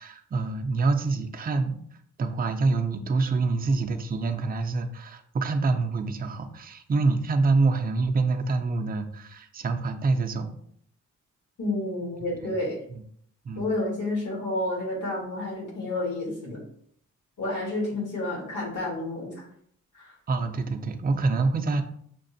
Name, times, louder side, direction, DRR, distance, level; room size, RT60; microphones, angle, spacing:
voice 1, 0.0-1.8 2.2-10.5 12.4-12.5 12.9-13.0 13.4-13.7 20.3-21.8, right 3 dB, 30° right, 5 dB, 0.4 m, -26 dB
voice 2, 11.6-12.8 13.5-16.6 17.4-19.4 19.9-20.1, left 2 dB, 75° left, -2 dB, 1.5 m, -30 dB
5.7 x 2.0 x 2.6 m, 0.64 s
cardioid pair, 95°, 31 cm